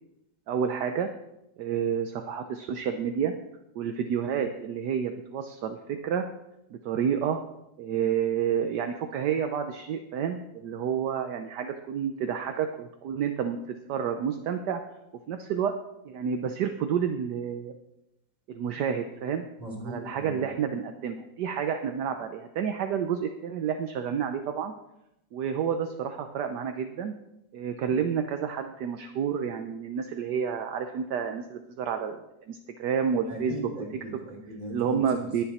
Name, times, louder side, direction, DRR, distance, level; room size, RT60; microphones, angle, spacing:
voice 1, 0.5-1.1 1.6-3.3 3.7-6.2 6.7-7.4 7.8-13.6 13.9-14.8 15.3-15.7 16.0-17.7 18.5-19.4 19.9-24.7 25.3-27.1 27.5-32.2 32.5-33.7 34.7-35.4, right 7 dB, 70° right, 6 dB, 1.3 m, -29 dB
voice 2, 19.6-20.4 33.3-35.3, right 1 dB, 20° right, -2 dB, 3.4 m, -38 dB
20.5 x 8.1 x 4.2 m, 0.87 s
omnidirectional pair, 2.0 m